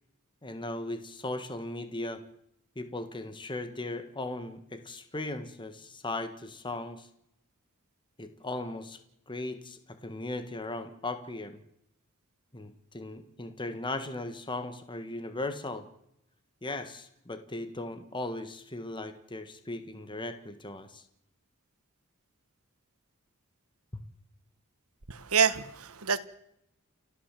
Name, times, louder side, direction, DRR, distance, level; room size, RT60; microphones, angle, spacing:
voice 1, 0.4-2.2 2.7-7.1 8.2-9.0 9.3-11.6 12.5-15.9 16.6-21.0 23.9-24.0, left 2 dB, 20° left, 1.6 m, -37 dB
voice 2, 25.1-26.2, right 7 dB, 85° right, 1.5 m, -27 dB
29.5 x 12.5 x 7.6 m
head